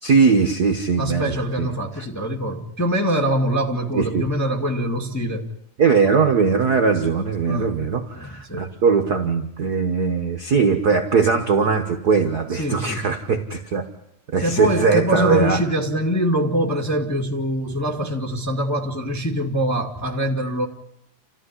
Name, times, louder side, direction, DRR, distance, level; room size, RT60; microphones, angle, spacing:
voice 1, 0.0-1.7 3.9-4.2 5.8-13.8 14.3-15.6, right 5 dB, 50° right, 1.2 m, -20 dB
voice 2, 1.0-5.5 7.5-7.8 8.1-8.7 12.6-13.1 14.4-20.7, equal, 5° left, 1.5 m, -24 dB
29.5 x 14.5 x 10.0 m
omnidirectional pair, 3.4 m